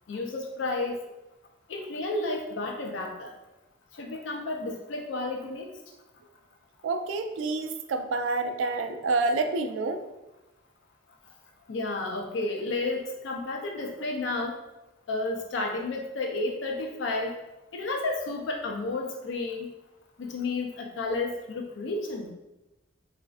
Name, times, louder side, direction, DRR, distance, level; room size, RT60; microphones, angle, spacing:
voice 1, 0.1-1.0 1.7-3.3 3.9-5.7 11.7-14.6 15.1-17.4 17.7-19.7 20.2-22.3, left 2 dB, 75° left, 2 dB, 0.4 m, -31 dB
voice 2, 6.8-10.0, right 3 dB, 85° right, 7 dB, 0.3 m, -28 dB
4.0 x 2.5 x 2.3 m, 0.99 s
head